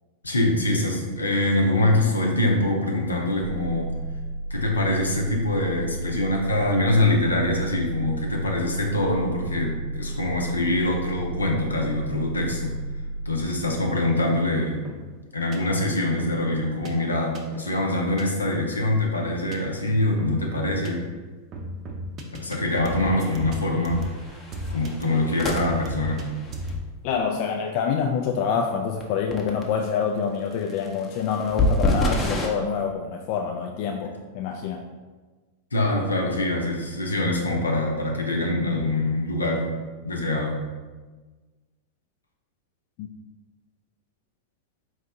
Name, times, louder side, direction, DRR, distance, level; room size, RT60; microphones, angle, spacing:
voice 1, 0.2-3.9 4.5-12.7 13.2-14.8 15.3-21.0 22.4-24.0 24.7-26.2 35.7-39.7 40.0-40.6, left 1 dB, 80° left, 0 dB, 0.7 m, -24 dB
sound 1, 3.4-13.4, right 1 dB, 90° right, 1.2 m, -33 dB
sound 2, 14.9-15.0 15.5-15.6 16.2-16.9 17.3-17.7 18.0-18.2 18.5-18.7 19.2-19.6 20.2-20.9 21.5-22.6 22.9-25.0 25.5-26.2 26.5-26.8, equal, 30° right, 0.6 m, -35 dB
sound 3, 22.7-22.8 23.2-23.4 23.9-26.8 29.0-29.1 29.3-29.6 30.5-32.5, left 1 dB, 20° left, 0.7 m, -27 dB
voice 2, 27.0-34.8 43.0-43.1, left 6 dB, 45° left, 2 dB, 0.3 m, -26 dB
4.4 x 2.7 x 3.5 m, 1.3 s
figure-of-eight pair, 90°, 0 cm